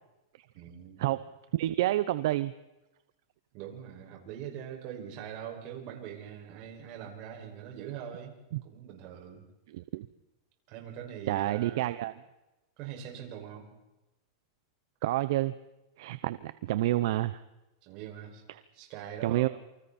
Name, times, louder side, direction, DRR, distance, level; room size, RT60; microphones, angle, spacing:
voice 1, 0.5-1.1 3.5-8.4 8.6-9.4 10.7-11.9 12.8-13.7 17.8-18.4 18.7-19.5, right 9 dB, 45° right, 1 dB, 6.0 m, -42 dB
voice 2, 1.5-2.5 8.5-8.6 9.7-10.1 11.3-12.1 15.0-15.5 16.0-17.4 19.2-19.5, right 15 dB, 65° right, 14 dB, 0.8 m, -28 dB
28.0 x 25.5 x 4.3 m, 0.99 s
supercardioid pair, 150°, 2 cm